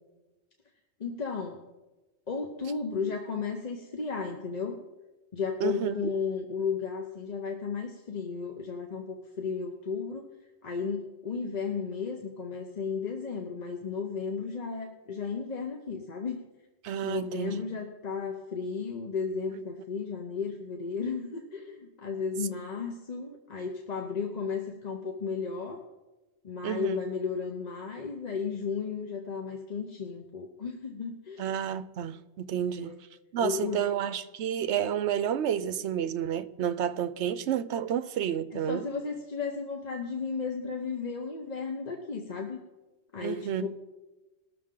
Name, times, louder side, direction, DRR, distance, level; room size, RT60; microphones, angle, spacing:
voice 1, 1.0-1.6 2.3-4.8 5.3-10.2 10.6-16.4 17.0-25.8 26.4-31.5 32.8-33.0 33.4-33.8 38.5-42.6 43.1-43.7, left 5 dB, 40° left, 0.8 m, -34 dB
voice 2, 5.6-6.1 16.8-17.6 19.5-19.6 26.6-27.0 31.4-32.9 33.3-38.9 43.2-43.7, right 9 dB, 70° right, 0.9 m, -30 dB
20.0 x 6.8 x 3.7 m
omnidirectional pair, 1.2 m